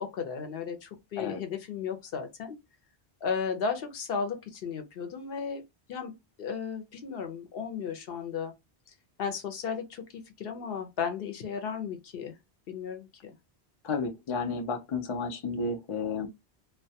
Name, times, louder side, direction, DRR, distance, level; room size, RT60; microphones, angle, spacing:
voice 1, 0.0-2.6 3.2-5.6 5.9-6.1 6.4-8.5 9.2-12.4 12.7-13.3, left 6 dB, 65° left, 0.8 m, -34 dB
voice 2, 13.8-16.3, left 4 dB, 45° left, 0.4 m, -32 dB
2.2 x 2.2 x 2.7 m
omnidirectional pair, 1.1 m